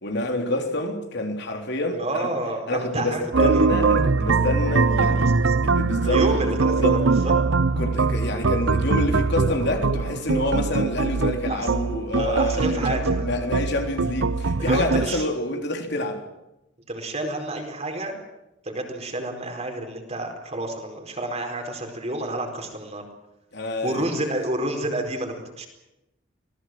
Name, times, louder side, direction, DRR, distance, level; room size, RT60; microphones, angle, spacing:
voice 1, 0.0-2.3 2.7-5.3 5.6-6.5 6.8-7.0 7.8-16.2 23.5-24.1, left 1 dB, 60° left, 3.6 m, -27 dB
voice 2, 1.9-3.7 5.0-5.6 6.0-7.3 11.5-11.7 12.1-13.2 14.6-15.2 16.9-18.2 18.6-23.0 23.8-25.7, right 1 dB, 35° right, 4.5 m, -29 dB
sound 1, 3.3-15.1, right 4 dB, 75° right, 0.8 m, -22 dB
25.5 x 18.5 x 7.7 m
head